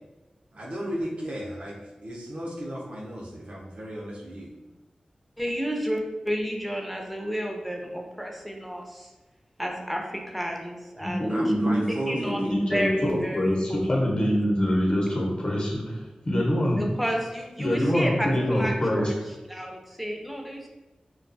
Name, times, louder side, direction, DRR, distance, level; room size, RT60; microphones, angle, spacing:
voice 1, 0.5-4.5 11.3-12.7, equal, 70° right, -4 dB, 0.6 m, -35 dB
voice 2, 5.4-9.1 9.6-11.4 11.9-12.4 12.7-13.5 16.8-18.3 18.5-19.1 19.5-20.7, equal, ahead, 1 dB, 0.5 m, -31 dB
voice 3, 11.0-11.8 12.1-16.8 17.6-19.1, equal, 45° left, -3 dB, 0.8 m, -25 dB
2.4 x 2.2 x 2.6 m, 1.1 s
cardioid pair, 45°, 2 cm